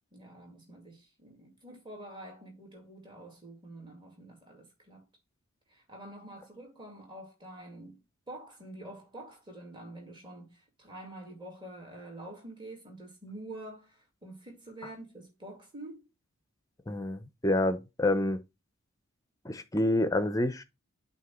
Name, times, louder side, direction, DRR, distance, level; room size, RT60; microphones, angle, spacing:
voice 1, 0.1-5.1 5.7-16.0, right 1 dB, 20° right, 2.2 m, -47 dB
voice 2, 16.9-18.4 19.4-20.6, left 1 dB, 15° left, 0.6 m, -28 dB
8.1 x 2.9 x 6.0 m
head